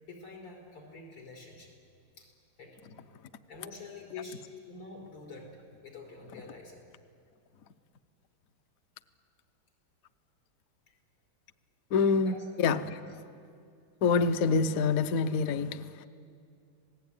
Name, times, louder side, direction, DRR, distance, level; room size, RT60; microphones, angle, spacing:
voice 1, 0.0-1.7 2.2-2.3 2.6-2.8 3.5-5.5 5.8-6.8 12.2-12.5, left 3 dB, 90° left, -1 dB, 5.6 m, -46 dB
voice 2, 11.9-13.2 14.0-16.1, left 5 dB, 60° left, 10 dB, 0.9 m, -27 dB
27.0 x 19.0 x 9.2 m, 2.4 s
omnidirectional pair, 2.4 m